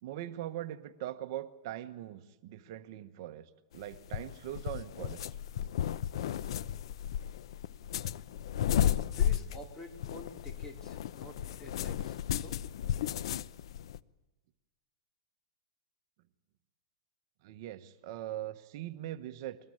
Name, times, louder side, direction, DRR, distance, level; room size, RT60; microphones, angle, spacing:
voice 1, 0.0-5.4 17.4-19.6, right 13 dB, 50° right, 9 dB, 1.2 m, -41 dB
sound 1, 3.7-14.0, left 10 dB, 70° left, 0.7 m, -34 dB
voice 2, 8.6-12.6, left 1 dB, 15° left, 3 dB, 4.0 m, -49 dB
23.0 x 19.5 x 8.9 m, 1.1 s
supercardioid pair, 150°, 3 cm